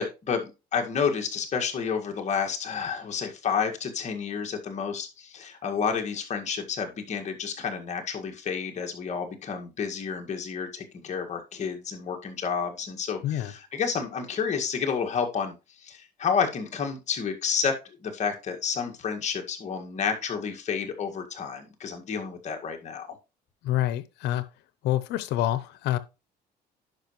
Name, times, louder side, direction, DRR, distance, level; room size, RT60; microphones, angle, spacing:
voice 1, 0.0-23.2, left 6 dB, 45° left, 1.9 m, -30 dB
voice 2, 23.6-24.5 24.8-26.0, left 13 dB, 85° left, 0.8 m, -27 dB
10.5 x 5.3 x 3.1 m
cardioid pair, 110°, 17 cm